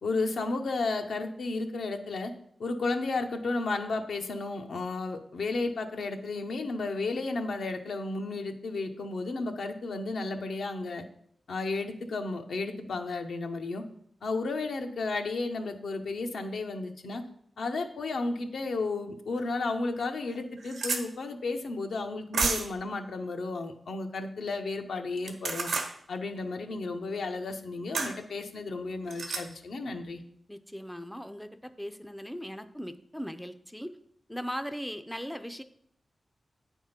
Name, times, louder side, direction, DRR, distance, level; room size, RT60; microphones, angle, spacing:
voice 1, 0.0-2.3 2.6-11.0 11.5-13.8 14.2-17.3 17.6-25.7 26.1-30.2, left 3 dB, 80° left, 5 dB, 0.8 m, -33 dB
sound 1, 19.4-19.5 20.0-20.1 20.3-21.0 22.3-22.8 25.2-25.9 27.9-28.1 29.1-29.4, right 4 dB, 80° right, 1.0 m, -30 dB
voice 2, 30.5-34.0 34.3-35.6, equal, 5° left, 10 dB, 0.4 m, -39 dB
8.6 x 3.6 x 5.7 m, 0.70 s
wide cardioid pair, 100°, 0 cm